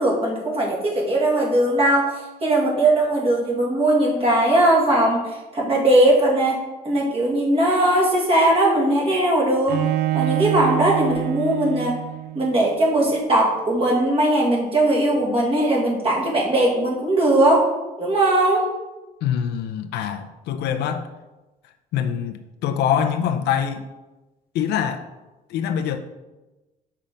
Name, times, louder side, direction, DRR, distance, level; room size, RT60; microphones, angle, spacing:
voice 1, 0.0-6.6 6.8-9.9 10.1-12.0 12.3-17.7 18.0-18.7, right 1 dB, 35° right, -2 dB, 2.0 m, -19 dB
Bowed string instrument, 9.7-12.6, right 14 dB, 70° right, 0.4 m, -26 dB
voice 2, 19.2-21.1 21.9-23.9 24.5-25.0 25.5-26.0, left 8 dB, 80° left, 7 dB, 0.6 m, -24 dB
5.6 x 3.6 x 5.2 m, 1.1 s
cardioid pair, 110°, 17 cm